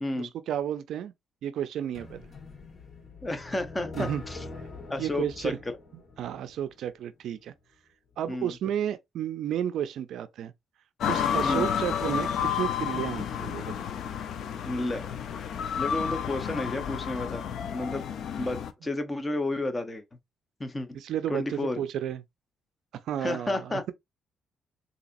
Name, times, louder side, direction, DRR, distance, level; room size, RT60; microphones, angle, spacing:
voice 1, 0.2-1.1 1.4-2.3 4.0-4.2 5.0-5.6 6.2-7.5 8.2-10.5 11.1-13.8 20.9-22.2 23.0-23.7, right 10 dB, 75° right, 0.4 m, -32 dB
sound 1, 1.9-6.9, left 3 dB, 50° left, 1.2 m, -44 dB
voice 2, 3.2-4.4 4.9-5.8 8.3-8.6 11.4-11.7 14.6-15.1 15.8-18.1 18.4-20.0 20.6-21.0 21.3-21.8 23.2-23.9, left 2 dB, 20° left, 0.8 m, -32 dB
sound 2, 11.0-18.7, left 8 dB, 70° left, 0.5 m, -31 dB
4.0 x 2.7 x 2.5 m
cardioid pair, 90°, 0 cm